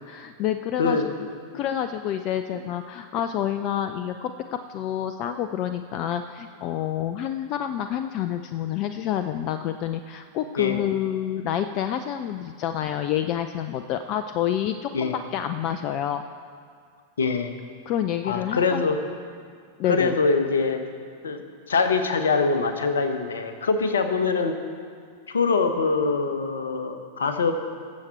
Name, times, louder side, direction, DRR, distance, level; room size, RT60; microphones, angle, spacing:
voice 1, 0.1-1.0 1.5-16.2 17.9-18.8 19.8-20.1, left 10 dB, 40° left, 9 dB, 0.4 m, -28 dB
voice 2, 17.2-17.5 18.2-19.0 19.9-20.8 21.2-21.4 21.7-24.6 25.3-27.5, left 4 dB, 65° left, 8 dB, 1.0 m, -23 dB
19.0 x 7.4 x 4.4 m, 2.2 s
figure-of-eight pair, 90°, 0 cm